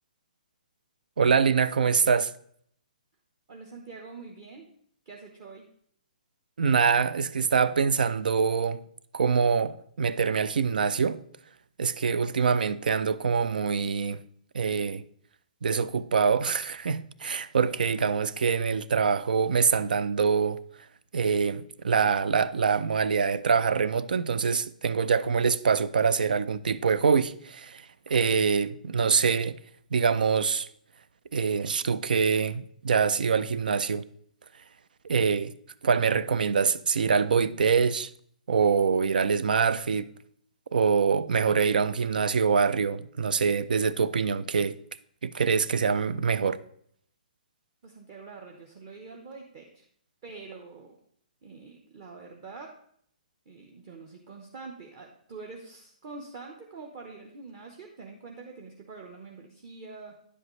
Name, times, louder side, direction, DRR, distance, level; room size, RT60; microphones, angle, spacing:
voice 1, 1.2-2.3 6.6-8.8 9.1-11.2 11.8-14.2 14.5-15.0 15.6-20.6 21.1-29.6 29.9-30.7 31.3-34.0 35.0-35.5 35.8-38.1 38.5-40.1 40.7-44.7 45.2-46.6, right 5 dB, 80° right, 0.5 m, -25 dB
voice 2, 3.5-4.6 5.1-5.7 47.8-49.9 50.2-50.9 51.4-52.7 53.5-60.1, right 4 dB, 30° right, 0.9 m, -45 dB
9.8 x 7.8 x 3.1 m
hypercardioid pair, 165°, 5 cm